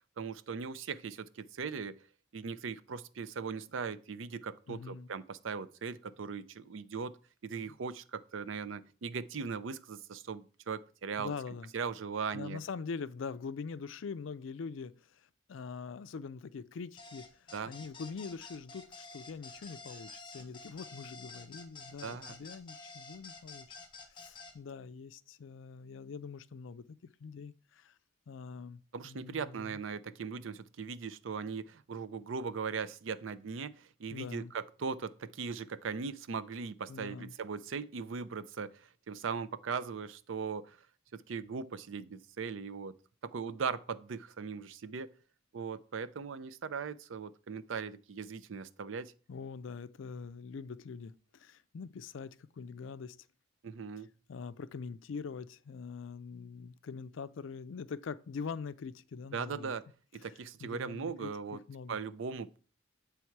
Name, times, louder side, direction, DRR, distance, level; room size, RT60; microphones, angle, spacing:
voice 1, 0.2-2.0 2.3-7.1 7.4-11.3 11.7-12.6 17.5-17.7 22.0-22.4 28.9-40.8 41.1-42.9 43.2-45.1 45.5-49.1 53.6-54.1 59.3-59.8 60.1-61.6 61.9-62.6, right 5 dB, 75° right, 0.5 m, -39 dB
voice 2, 4.7-5.1 11.2-11.7 12.3-23.8 24.1-26.8 27.2-27.9 28.3-29.8 34.1-34.5 36.9-37.3 49.3-53.2 54.3-59.7 60.6-62.0, left 5 dB, 70° left, 0.4 m, -43 dB
sound 1, 17.0-24.5, left 3 dB, 25° left, 1.3 m, -50 dB
8.4 x 3.5 x 4.6 m
head